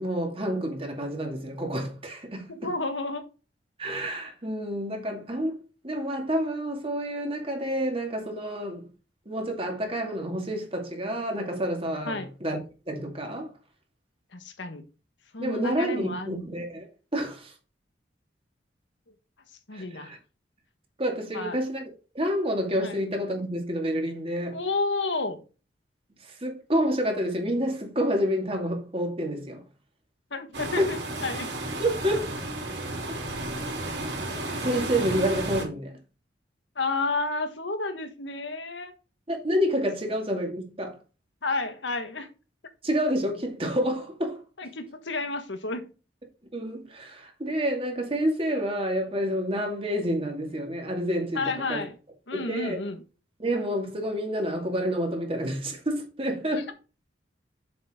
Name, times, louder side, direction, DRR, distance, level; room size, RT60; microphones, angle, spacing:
voice 1, 0.0-2.7 3.8-8.9 9.3-12.6 12.9-13.5 15.4-17.5 19.7-20.2 21.0-21.8 22.1-24.6 26.2-29.6 30.8-30.9 31.8-32.3 34.5-36.0 39.3-41.0 42.8-44.4 46.5-51.8 52.3-52.8 53.4-56.7, equal, 30° right, 2.3 m, -29 dB
voice 2, 2.5-3.2 12.0-12.3 14.3-14.9 15.3-16.5 19.7-20.1 21.3-21.6 22.8-23.0 24.5-25.4 30.3-31.5 36.7-38.9 41.4-42.3 44.6-45.9 51.3-52.0 52.3-53.0 56.5-56.7, left 3 dB, 85° left, 1.5 m, -31 dB
sound 1, 30.5-35.6, right 2 dB, 70° right, 3.4 m, -33 dB
7.3 x 7.2 x 3.7 m
head